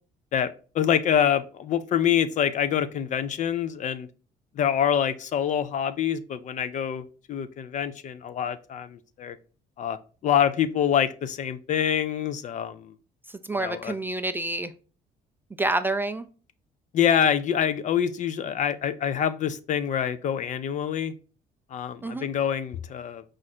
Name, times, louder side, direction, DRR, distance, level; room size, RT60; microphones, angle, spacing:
voice 1, 0.3-4.1 4.6-9.4 9.8-10.0 10.2-12.9 13.5-13.9 16.9-21.1 21.7-23.2, left 9 dB, 45° left, 13 dB, 0.4 m, -26 dB
voice 2, 13.5-14.7 15.6-16.3 22.0-22.3, right 2 dB, 10° right, 10 dB, 0.3 m, -28 dB
4.9 x 2.5 x 4.2 m, 0.37 s
cardioid pair, 110°, 17 cm